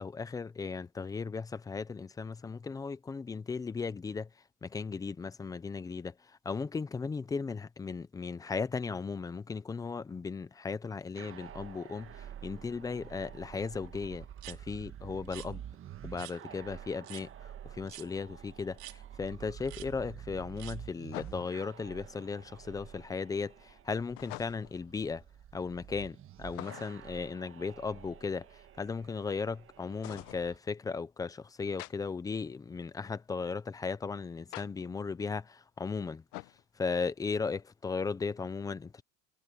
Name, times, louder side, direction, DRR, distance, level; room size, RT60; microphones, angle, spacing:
voice 1, 0.0-4.3 4.6-6.1 6.4-15.6 16.0-25.2 25.5-36.2 36.8-39.0, left 5 dB, 10° left, 0.4 m, -36 dB
sound 1, 11.1-30.6, right 10 dB, 30° right, 1.5 m, -49 dB
sound 2, 14.4-14.6 15.2-15.5 16.2-16.4 17.0-17.2 17.9-18.1 18.8-19.0 19.6-19.9 20.6-20.8, right 23 dB, 85° right, 4.2 m, -47 dB
sound 3, 18.5-18.6 21.1-21.7 24.2-24.8 26.5-27.1 30.0-30.4 31.8-31.9 34.5-34.7 36.3-36.6, left 22 dB, 85° left, 1.1 m, -45 dB
cardioid pair, 150°, 45 cm